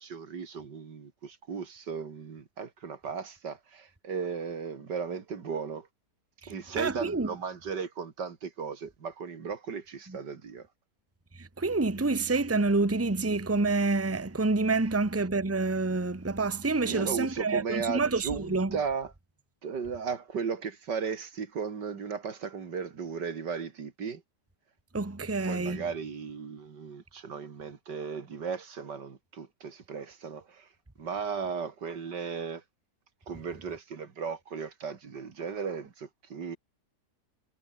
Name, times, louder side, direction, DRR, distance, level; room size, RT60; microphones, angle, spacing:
voice 1, 0.0-5.9 6.5-10.7 16.8-19.1 19.6-24.2 25.4-30.7 31.0-32.6 33.3-36.6, right 6 dB, 85° right, 2.8 m, -36 dB
voice 2, 6.8-7.3 11.4-18.8 24.9-25.8, right 3 dB, 10° right, 1.2 m, -28 dB
omnidirectional pair, 1.8 m